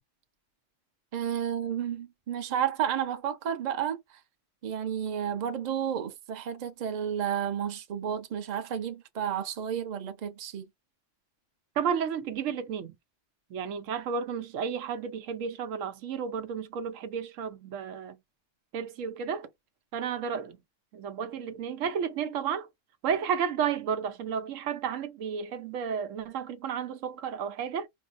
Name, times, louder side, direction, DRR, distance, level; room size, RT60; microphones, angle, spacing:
voice 1, 1.1-4.0 4.6-10.6, right 9 dB, 45° right, 0.6 m, -31 dB
voice 2, 11.8-13.0 13.5-18.2 18.7-19.5 19.9-20.6 20.9-22.7 23.0-27.9, right 7 dB, 90° right, 1.0 m, -32 dB
4.5 x 2.1 x 2.5 m
omnidirectional pair, 1.3 m